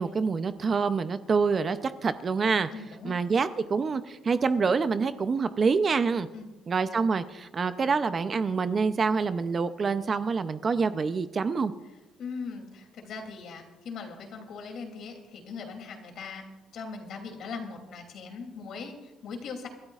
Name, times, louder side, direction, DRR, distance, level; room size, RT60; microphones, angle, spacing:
voice 1, 0.0-2.7 3.0-6.3 6.7-11.7, right 5 dB, 30° right, 11 dB, 0.5 m, -26 dB
voice 2, 2.7-3.2 6.3-6.5 12.2-16.5 16.7-19.7, left 5 dB, 55° left, 4 dB, 2.8 m, -40 dB
29.5 x 13.0 x 2.4 m, 1.1 s
cardioid pair, 145°, 0 cm